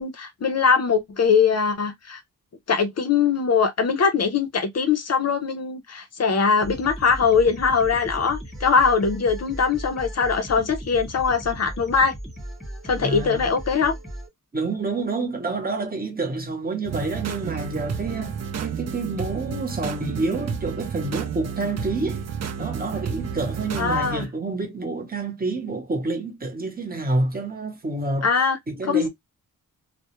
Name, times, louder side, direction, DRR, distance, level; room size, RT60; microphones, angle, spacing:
voice 1, 0.0-2.2 2.7-12.1 12.8-13.9 23.8-24.3 28.2-28.6 28.9-29.1, left 5 dB, 50° left, 0.5 m, -21 dB
sound 1, 6.6-14.3, right 1 dB, ahead, 1.0 m, -37 dB
voice 2, 13.0-13.5 14.5-22.2 22.6-28.3 28.7-29.1, right 3 dB, 25° right, 0.8 m, -28 dB
sound 2, 16.8-24.3, right 7 dB, 50° right, 0.5 m, -31 dB
2.2 x 2.0 x 2.9 m
wide cardioid pair, 125°, 33 cm